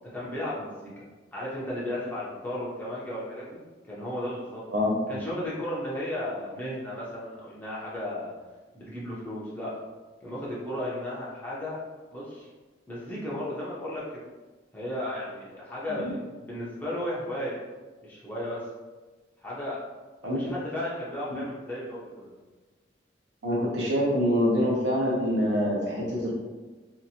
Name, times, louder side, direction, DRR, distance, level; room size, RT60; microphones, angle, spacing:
voice 1, 0.0-1.1 1.3-4.6 5.1-8.3 8.7-9.7 10.2-11.8 12.1-12.5 12.9-14.2 14.7-17.6 18.0-18.6 19.4-19.8 20.3-22.4, left 1 dB, 10° left, -8 dB, 0.6 m, -34 dB
voice 2, 4.7-5.1 16.0-16.1 20.2-20.4 23.4-26.4, equal, 75° right, -4 dB, 0.8 m, -25 dB
2.7 x 2.5 x 2.7 m, 1.3 s
head